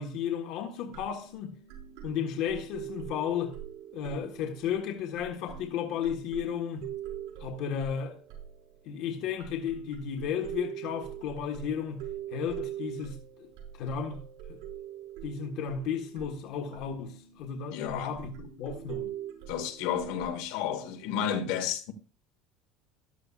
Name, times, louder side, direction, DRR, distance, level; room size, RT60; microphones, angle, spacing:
voice 1, 0.0-1.5 2.0-3.6 3.9-6.9 7.4-8.2 8.8-13.5 13.8-14.6 15.2-19.1, left 8 dB, 50° left, 1.5 m, -34 dB
sound 1, 0.9-9.0 9.4-20.4, right 10 dB, 80° right, 6.2 m, -43 dB
voice 2, 17.7-18.2 19.5-21.9, left 8 dB, 70° left, 1.7 m, -31 dB
14.0 x 12.0 x 2.5 m
cardioid pair, 175°, 0 cm